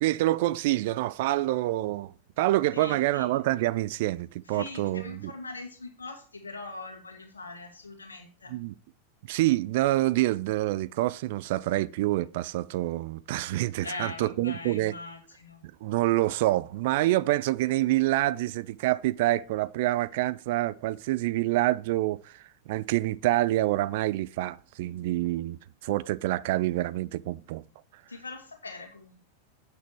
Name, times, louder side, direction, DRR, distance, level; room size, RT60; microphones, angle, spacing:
voice 1, 0.0-5.3 8.5-8.7 9.3-14.9 15.8-27.6, right 16 dB, 50° right, 0.4 m, -27 dB
voice 2, 2.7-3.3 4.5-8.5 13.8-15.7 28.1-29.2, left 3 dB, 75° left, 1.8 m, -41 dB
8.0 x 6.2 x 4.6 m
figure-of-eight pair, 90°, 0 cm